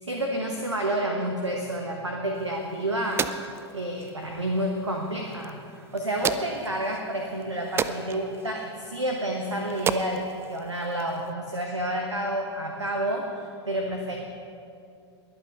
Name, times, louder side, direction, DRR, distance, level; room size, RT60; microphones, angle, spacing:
voice 1, 0.0-3.3 3.7-5.6 5.9-14.2, right 1 dB, 80° right, 2 dB, 1.3 m, -29 dB
sound 1, 2.3-11.3, right 7 dB, 15° right, 0.5 m, -35 dB
22.0 x 8.8 x 5.3 m, 2.4 s
figure-of-eight pair, 95°, 15 cm